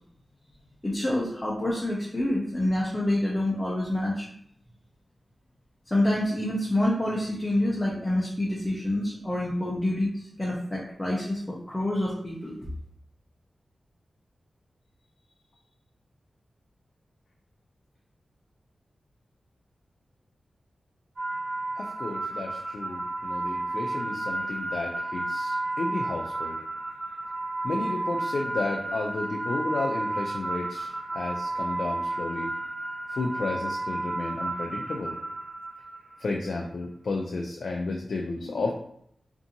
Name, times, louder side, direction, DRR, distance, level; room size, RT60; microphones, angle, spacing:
voice 1, 0.8-4.3 5.9-12.5, left 1 dB, 15° left, -5 dB, 0.6 m, -27 dB
sound 1, 21.2-36.3, right 2 dB, 85° right, 0.7 m, -32 dB
voice 2, 21.8-26.6 27.6-32.5 33.1-35.2 36.2-38.7, left 3 dB, 75° left, 1 dB, 0.3 m, -32 dB
2.6 x 2.6 x 2.6 m, 0.69 s
wide cardioid pair, 85°, 0 cm